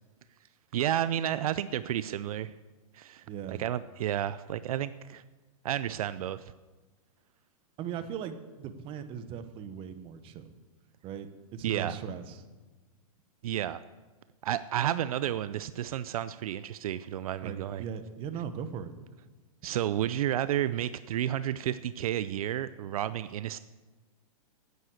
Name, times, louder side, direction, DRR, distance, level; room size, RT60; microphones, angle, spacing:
voice 1, 0.7-2.5 2.9-5.2 5.6-6.5 11.6-12.0 13.4-13.8 14.4-17.8 19.6-23.6, right 11 dB, 70° right, 15 dB, 0.5 m, -31 dB
voice 2, 3.3-3.6 7.8-10.5 11.0-12.4 17.4-18.9, right 7 dB, 30° right, 10 dB, 1.0 m, -39 dB
9.3 x 9.3 x 8.0 m, 1.2 s
hypercardioid pair, 140°, 19 cm